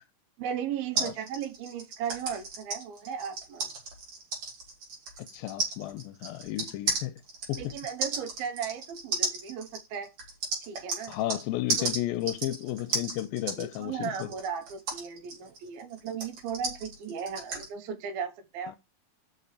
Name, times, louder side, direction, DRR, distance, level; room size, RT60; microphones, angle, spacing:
voice 1, 0.4-3.7 7.6-10.1 10.7-11.2 11.8-11.9 13.6-18.7, right 7 dB, 75° right, 2.9 m, -36 dB
sound 1, 1.0-11.4 11.7-17.7, right 3 dB, 50° right, 3.6 m, -34 dB
voice 2, 5.2-7.1 7.5-7.7 11.1-14.3, left 14 dB, 80° left, 2.3 m, -33 dB
5.9 x 5.6 x 6.8 m
omnidirectional pair, 4.4 m